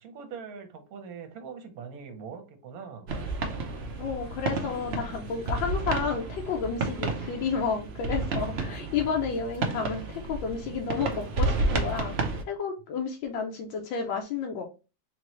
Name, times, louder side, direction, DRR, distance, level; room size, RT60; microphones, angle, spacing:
voice 1, 0.0-3.1, right 6 dB, 60° right, 5 dB, 1.2 m, -42 dB
sound 1, 3.1-12.4, right 3 dB, 75° right, 0.5 m, -31 dB
voice 2, 4.0-12.1 12.5-14.6, left 5 dB, 85° left, 2 dB, 1.4 m, -31 dB
3.8 x 2.9 x 3.0 m, 0.31 s
omnidirectional pair, 2.0 m